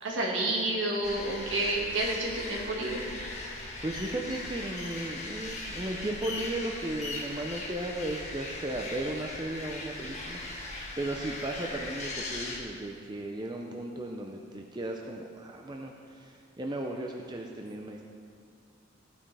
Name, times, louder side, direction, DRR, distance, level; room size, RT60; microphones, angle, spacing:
voice 1, 0.0-3.0, right 2 dB, 70° right, -2 dB, 1.8 m, -30 dB
sound 1, 1.0-12.6, left 2 dB, 35° left, 1.5 m, -39 dB
voice 2, 3.8-18.0, right 1 dB, 20° right, 1 dB, 0.5 m, -36 dB
14.5 x 8.9 x 3.3 m, 2.2 s
head